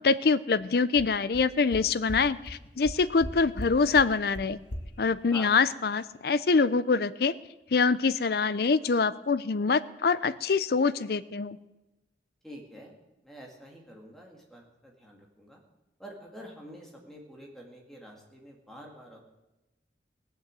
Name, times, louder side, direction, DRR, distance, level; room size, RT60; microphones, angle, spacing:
voice 1, 0.0-4.6 5.0-7.3 7.7-11.6, left 4 dB, 60° left, 16 dB, 0.5 m, -25 dB
sound 1, 0.6-0.7 1.0-1.1 1.3-1.4 1.7-1.8 2.1-2.2 2.5-2.6 2.8-3.3 3.6-3.7 3.9-4.0 4.3-4.4 4.7-4.8, left 1 dB, 85° left, 1.6 m, -36 dB
voice 2, 12.4-13.0 13.2-15.6 16.0-19.2, equal, ahead, -1 dB, 2.2 m, -47 dB
18.5 x 6.9 x 7.6 m, 1.0 s
head